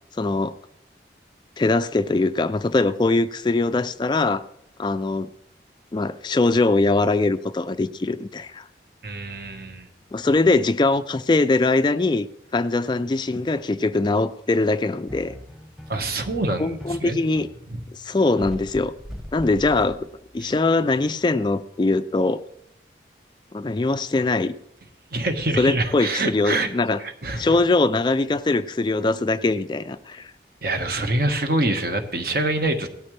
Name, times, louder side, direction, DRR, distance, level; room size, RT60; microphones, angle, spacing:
voice 1, 0.2-0.5 1.6-4.5 4.8-5.3 5.9-8.7 10.1-12.3 12.5-15.3 16.6-17.5 17.9-18.9 19.3-20.1 20.3-22.4 23.5-24.5 25.6-27.0 27.4-30.3, left 3 dB, 25° left, 12 dB, 0.3 m, -22 dB
voice 2, 9.0-9.9 15.9-17.2 17.7-17.8 20.4-20.5 25.1-26.7 27.0-27.5 30.6-32.9, right 2 dB, 55° right, 6 dB, 1.4 m, -25 dB
sound 1, 15.1-20.6, equal, 5° right, 1.1 m, -39 dB
17.0 x 13.0 x 3.3 m, 0.79 s
head